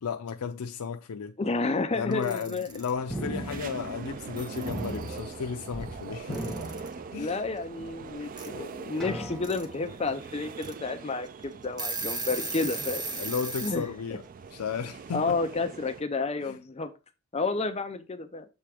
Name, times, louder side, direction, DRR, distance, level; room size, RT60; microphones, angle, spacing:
voice 1, 0.0-1.4 1.9-6.5 7.1-7.4 13.2-14.2 14.5-15.4 16.4-16.6, left 6 dB, 85° left, 0.5 m, -34 dB
voice 2, 1.4-2.7 7.2-13.0 13.6-13.8 15.1-16.9 17.3-18.5, left 3 dB, 25° left, 0.5 m, -30 dB
Alarm / Clock, 2.1-2.9 4.0-4.1 4.4-5.2 6.3-6.9 8.4-8.5 9.2-9.6 10.1-10.2 10.6-10.7 11.3-11.4 11.6-13.8, right 3 dB, 20° right, 0.9 m, -36 dB
sound 1, 2.7-16.0, right 5 dB, 40° right, 0.3 m, -42 dB
sound 2, 3.1-4.3 4.7-6.0 6.2-7.5 8.1-8.2 9.0-9.8, equal, ahead, 1.0 m, -38 dB
7.2 x 3.4 x 4.8 m
head